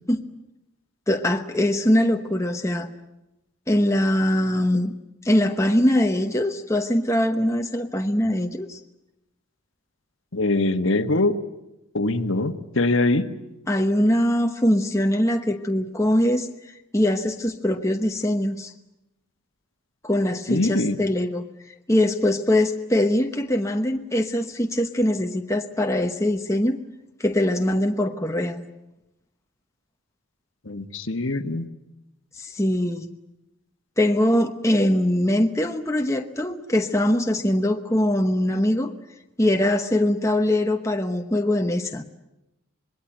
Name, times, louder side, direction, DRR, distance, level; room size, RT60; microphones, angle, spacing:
voice 1, 1.1-2.9 3.7-5.0 5.2-8.8 13.7-16.5 16.9-18.7 20.0-21.5 21.9-26.8 27.2-28.6 32.4-33.1 34.0-38.9 39.4-42.0, left 1 dB, 15° left, 4 dB, 1.0 m, -22 dB
voice 2, 10.3-11.4 11.9-13.3 20.5-21.0 30.6-31.7, left 2 dB, 60° left, 8 dB, 1.4 m, -23 dB
26.5 x 21.0 x 9.0 m, 0.91 s
head